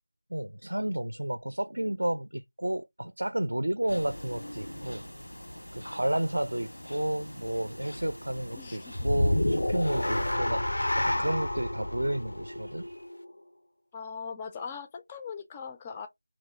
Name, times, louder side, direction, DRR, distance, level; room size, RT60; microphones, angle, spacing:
voice 1, 0.3-5.0 5.7-10.7 10.9-13.1, right 1 dB, 75° right, 0.4 m, -31 dB
sound 1, 3.9-10.4, equal, 90° left, 1.5 m, -44 dB
voice 2, 8.6-9.0 13.9-16.1, left 6 dB, 10° left, 0.3 m, -40 dB
sound 2, 9.0-13.3, left 1 dB, 75° left, 0.5 m, -29 dB
2.9 x 2.2 x 3.9 m
figure-of-eight pair, 170°, 0 cm